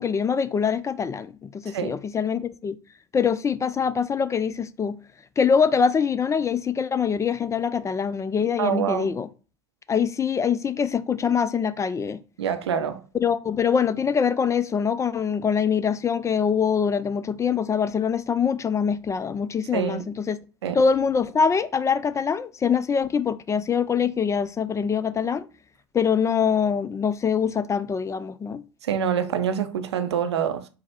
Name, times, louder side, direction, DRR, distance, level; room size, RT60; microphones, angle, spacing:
voice 1, 0.0-2.8 3.1-5.0 5.4-9.3 9.9-12.2 13.2-20.4 20.7-25.5 25.9-28.6, left 6 dB, 20° left, 0.3 m, -24 dB
voice 2, 1.6-1.9 8.6-9.1 12.4-13.0 19.7-20.1 20.6-20.8 28.8-30.7, right 8 dB, 80° right, 0.5 m, -26 dB
4.5 x 2.0 x 4.4 m
figure-of-eight pair, 70°, 14 cm